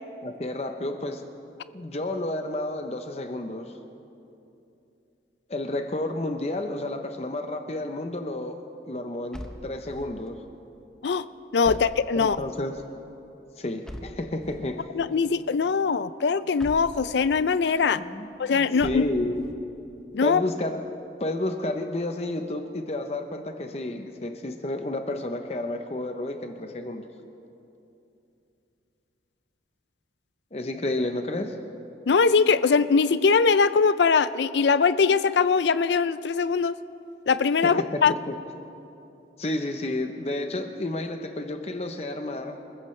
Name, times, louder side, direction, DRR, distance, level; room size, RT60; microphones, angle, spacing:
voice 1, 0.2-1.3 1.7-3.7 5.5-10.4 12.1-12.7 13.6-14.9 17.9-19.4 20.2-20.8 21.2-27.0 30.5-31.6 37.6-38.4 39.4-42.6, left 1 dB, 35° left, 6 dB, 0.8 m, -31 dB
sound 1, 9.3-10.3 11.6-12.6 13.9-14.8 16.6-17.5 18.8-19.6, equal, 5° left, 0.8 m, -42 dB
voice 2, 11.5-12.4 15.0-18.0 18.4-19.0 20.1-20.4 32.1-36.8 37.3-38.1, left 5 dB, 80° left, 15 dB, 0.5 m, -21 dB
28.0 x 15.0 x 3.3 m, 2.8 s
head